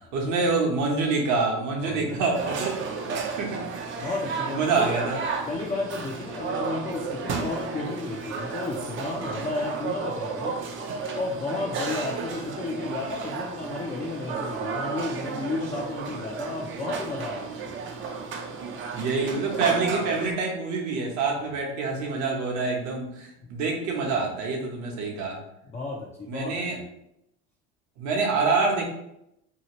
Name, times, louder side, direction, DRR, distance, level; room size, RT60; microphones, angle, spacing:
voice 1, 0.1-3.6 4.0-4.1 4.5-5.2 18.9-25.4 26.3-26.8 28.0-28.9, right 4 dB, 60° right, 0 dB, 1.0 m, -26 dB
voice 2, 1.8-2.6 4.0-4.9 5.5-10.6 11.1-17.5 21.4-21.6 25.6-26.8, left 3 dB, 20° left, -2 dB, 0.4 m, -33 dB
sound 1, 2.3-20.3, right 4 dB, 40° right, 0.5 m, -33 dB
2.8 x 2.4 x 2.9 m, 0.81 s
supercardioid pair, 100°, 32 cm